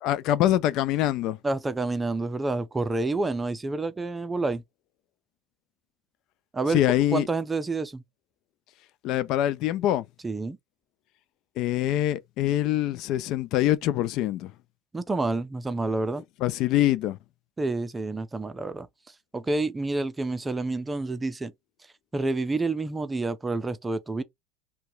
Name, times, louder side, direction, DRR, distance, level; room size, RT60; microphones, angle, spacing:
voice 1, 0.0-1.4 6.7-7.3 9.0-10.0 11.6-14.5 16.4-17.2, left 13 dB, 60° left, 0.3 m, -24 dB
voice 2, 1.4-4.6 6.5-6.8 7.1-8.0 10.2-10.6 14.9-16.2 17.6-18.9 19.3-21.5 22.1-24.2, right 3 dB, 15° right, 0.5 m, -28 dB
2.8 x 2.2 x 3.9 m
supercardioid pair, 100°, 0 cm